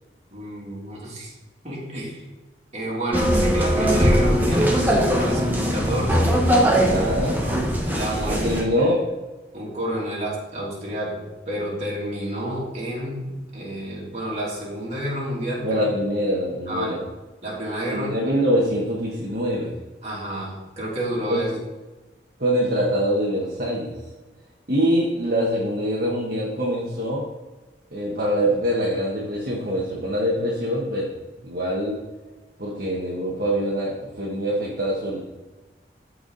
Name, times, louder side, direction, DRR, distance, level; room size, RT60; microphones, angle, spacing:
voice 1, 0.3-1.3 1.6-2.2 2.7-6.3 6.9-7.1 7.4-8.4 9.5-15.8 16.7-17.0 17.4-18.1 20.0-21.5, right 1 dB, 35° right, -5 dB, 2.7 m, -30 dB
sound 1, 3.1-8.6, equal, 10° right, 1.3 m, -20 dB
voice 2, 6.8-7.3 8.3-9.0 15.6-17.0 17.9-19.7 21.3-21.4 22.4-23.9 24.7-27.2 27.9-31.1 31.4-32.0 32.6-35.2, equal, 50° right, -5 dB, 1.4 m, -24 dB
14.0 x 4.7 x 4.0 m, 1.2 s
head